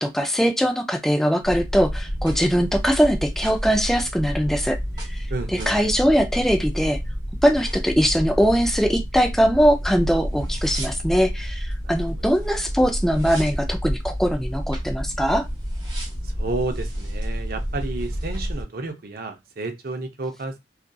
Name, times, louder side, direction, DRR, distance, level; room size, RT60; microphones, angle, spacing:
voice 1, 0.0-4.8 5.5-7.0 7.4-15.4, equal, ahead, 0.3 m, -21 dB
sound 1, 1.4-18.6, equal, 25° right, 0.8 m, -29 dB
voice 2, 5.3-5.8 11.8-12.4 16.2-20.6, right 3 dB, 50° right, 0.5 m, -32 dB
2.6 x 2.4 x 2.2 m
head